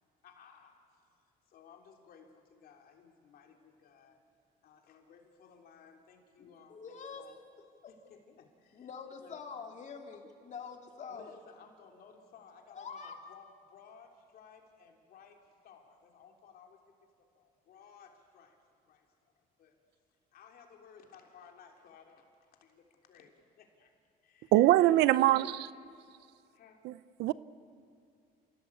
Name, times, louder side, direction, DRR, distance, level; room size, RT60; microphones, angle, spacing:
voice 1, 0.2-1.0 1.4-4.2 4.6-7.3 7.9-8.9 9.2-9.3 11.1-18.6 18.9-19.8 20.1-23.9 24.2-24.5 24.8-25.4 26.5-26.8, left 6 dB, 65° left, 3.4 m, -58 dB
voice 2, 6.4-7.3 7.6-7.9 8.7-11.3 12.7-13.2, left 6 dB, 45° left, 2.8 m, -45 dB
voice 3, 24.5-25.7 26.8-26.9 27.2-27.3, right 15 dB, 85° right, 0.6 m, -23 dB
28.5 x 17.0 x 8.4 m
cardioid pair, 110°, 17 cm